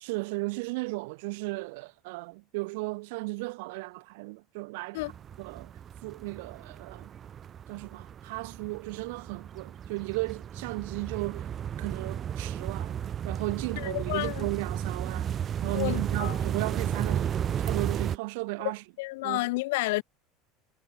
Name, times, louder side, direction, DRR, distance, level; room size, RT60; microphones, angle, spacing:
voice 1, 0.0-5.1 5.4-5.7 6.0-7.1 7.7-11.5 11.8-13.0 13.2-15.3 15.6-17.3 17.6-18.8 19.2-19.5, right 26 dB, 70° right, 0.8 m, -35 dB
sound 1, 5.0-18.2, right 9 dB, 25° right, 0.6 m, -34 dB
voice 2, 13.8-14.5 15.7-16.4 19.0-20.0, left 22 dB, 85° left, 0.4 m, -30 dB
cardioid pair, 180°, 0 cm